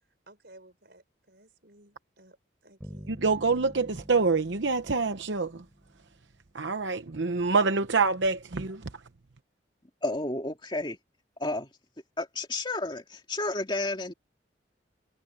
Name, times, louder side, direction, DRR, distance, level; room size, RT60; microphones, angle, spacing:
voice 1, 0.3-2.4 2.6-3.2, right 1 dB, 55° right, 5.5 m, -56 dB
sound 1, 2.8-6.5, equal, 10° right, 5.3 m, -48 dB
voice 2, 3.1-5.6 6.5-8.8, right 4 dB, 70° right, 0.9 m, -26 dB
voice 3, 10.0-11.0 11.4-11.7 12.2-14.1, left 2 dB, 25° left, 2.8 m, -31 dB
head